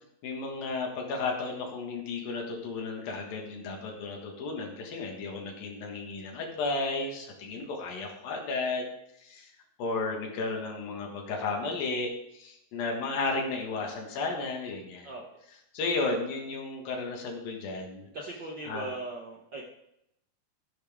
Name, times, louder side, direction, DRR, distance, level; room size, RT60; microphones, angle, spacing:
voice 1, 0.2-8.9 9.2-9.5 9.8-15.1 15.7-18.0 18.7-18.9, left 3 dB, 85° left, 0 dB, 3.4 m, -33 dB
voice 2, 18.0-19.6, right 2 dB, 65° right, -2 dB, 1.1 m, -39 dB
12.5 x 10.5 x 3.6 m, 0.80 s
omnidirectional pair, 4.0 m